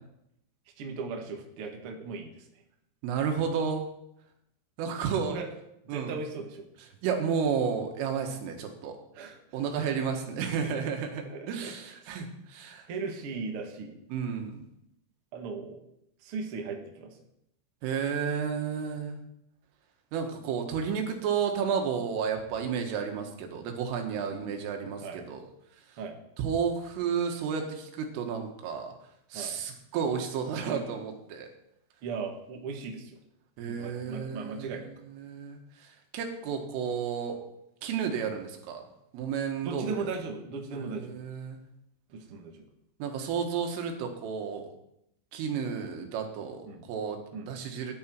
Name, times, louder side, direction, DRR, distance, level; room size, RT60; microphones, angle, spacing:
voice 1, 0.8-2.4 5.3-5.5 5.9-6.7 9.1-9.4 10.6-10.8 11.3-11.7 12.0-12.2 12.9-14.0 15.3-15.8 16.2-17.2 24.2-24.4 25.0-25.2 26.0-26.2 29.3-29.6 32.0-33.2 33.7-34.9 39.6-41.1 42.1-42.6 46.7-46.8 47.3-47.5, right 4 dB, 70° right, 2 dB, 1.3 m, -37 dB
voice 2, 3.0-3.8 4.8-5.4 5.9-6.1 7.0-9.0 9.5-12.9 14.1-14.6 17.8-19.2 20.1-25.4 26.4-28.9 29.3-31.5 33.6-34.8 35.2-35.9 36.1-37.4 37.8-38.8 39.1-40.1 40.7-41.6 43.0-44.7 45.3-47.9, right 6 dB, 90° right, 4 dB, 4.3 m, -32 dB
17.5 x 10.5 x 4.6 m, 0.79 s
omnidirectional pair, 5.6 m